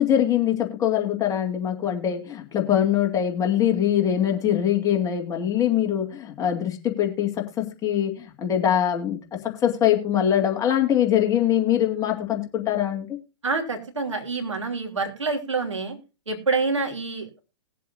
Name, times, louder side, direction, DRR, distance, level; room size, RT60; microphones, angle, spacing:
voice 1, 0.0-13.2, left 10 dB, 20° left, 2.1 m, -23 dB
voice 2, 13.4-16.0 16.3-17.4, right 4 dB, 90° right, 3.1 m, -27 dB
20.0 x 7.6 x 2.6 m
hypercardioid pair, 120°, 15 cm